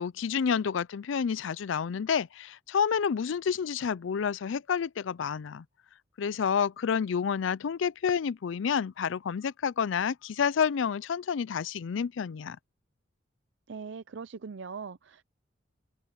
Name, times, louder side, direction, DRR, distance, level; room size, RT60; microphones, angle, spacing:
voice 1, 0.0-5.6 6.2-12.6, left 7 dB, 85° left, 0.4 m, -29 dB
voice 2, 13.7-15.2, right 5 dB, 75° right, 0.5 m, -41 dB
head